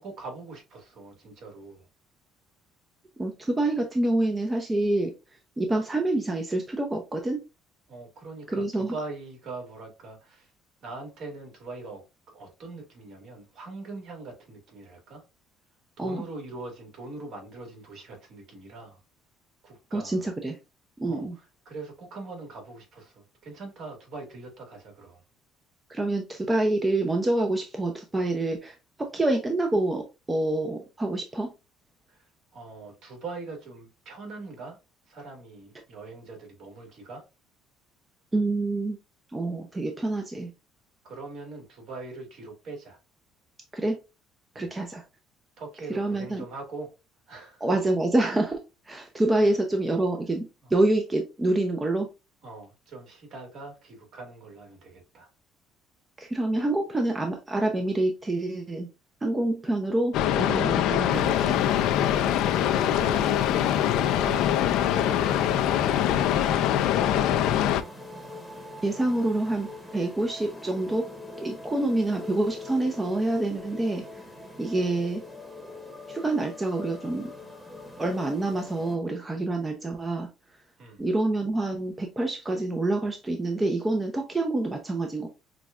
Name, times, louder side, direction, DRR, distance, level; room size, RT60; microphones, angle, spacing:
voice 1, 0.0-1.9 7.9-10.5 10.8-15.2 16.0-19.0 19.6-20.2 21.1-25.2 32.1-34.8 35.1-37.2 41.0-43.0 44.5-44.7 45.6-46.9 47.3-47.6 49.3-49.5 50.6-50.7 52.4-55.3 62.1-64.4 64.8-66.6 66.9-67.7 80.8-81.0, right 3 dB, 60° right, 1.8 m, -42 dB
voice 2, 3.2-5.1 5.6-7.4 8.5-8.9 16.0-16.2 19.9-20.6 21.0-21.3 25.9-31.5 38.3-39.0 39.3-40.5 43.7-44.0 44.5-45.0 46.0-46.4 47.6-48.6 48.9-52.1 56.2-58.9 59.2-61.5 68.8-71.1 71.4-74.0 74.6-75.2 76.1-77.3 78.0-80.3 81.0-85.3, right 2 dB, 15° right, 0.6 m, -27 dB
sound 1, 60.1-67.8, left 11 dB, 75° left, 0.4 m, -23 dB
sound 2, 61.1-79.0, left 1 dB, ahead, 1.1 m, -42 dB
6.0 x 2.3 x 2.4 m
cardioid pair, 115°, 0 cm